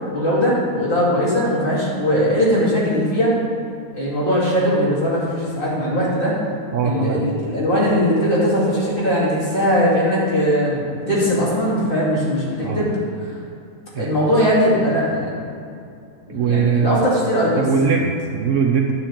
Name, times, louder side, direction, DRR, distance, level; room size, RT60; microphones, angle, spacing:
voice 1, 0.1-3.4 3.9-6.3 6.8-12.9 13.2-13.3 14.0-15.4 16.3-17.6, equal, 35° left, -8 dB, 2.6 m, -19 dB
voice 2, 6.7-7.2 12.6-12.8 13.9-14.1 16.3-17.0 17.6-18.9, right 6 dB, 65° right, 2 dB, 0.9 m, -20 dB
9.6 x 8.4 x 3.7 m, 2.5 s
omnidirectional pair, 1.6 m